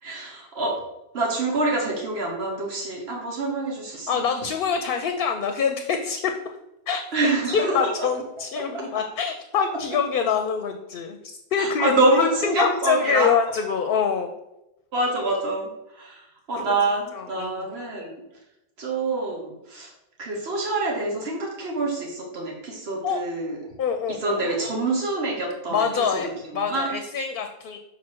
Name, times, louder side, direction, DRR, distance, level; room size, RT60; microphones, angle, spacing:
voice 1, 0.0-0.8 1.1-4.1 7.1-7.9 8.7-8.8 11.6-13.3 14.9-18.2 18.8-19.9 20.2-23.6 24.2-25.8 26.1-26.2 26.5-26.9, right 3 dB, 80° right, -1 dB, 1.3 m, -26 dB
voice 2, 4.1-6.3 6.9-14.3 16.5-16.7 17.1-17.7 23.0-23.2 23.8-24.4 25.7-27.8, left 6 dB, 65° left, 6 dB, 0.7 m, -25 dB
6.2 x 4.0 x 4.4 m, 0.88 s
omnidirectional pair, 1.0 m